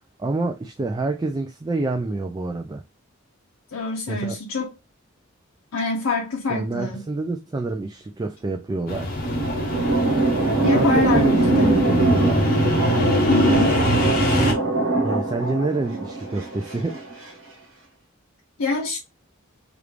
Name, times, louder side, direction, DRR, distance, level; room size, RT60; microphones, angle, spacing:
voice 1, 0.2-2.8 4.1-4.4 6.5-9.2 10.4-12.5 15.0-17.0, right 2 dB, 20° right, 0.3 m, -27 dB
voice 2, 3.7-4.7 5.7-7.0 10.6-11.8 13.1-13.8 18.6-19.0, left 4 dB, 90° left, 0.6 m, -25 dB
sound 1, 8.8-17.3, right 3 dB, 70° right, 1.2 m, -22 dB
sound 2, 8.9-14.5, left 1 dB, 45° left, 0.7 m, -23 dB
3.4 x 2.4 x 3.1 m
head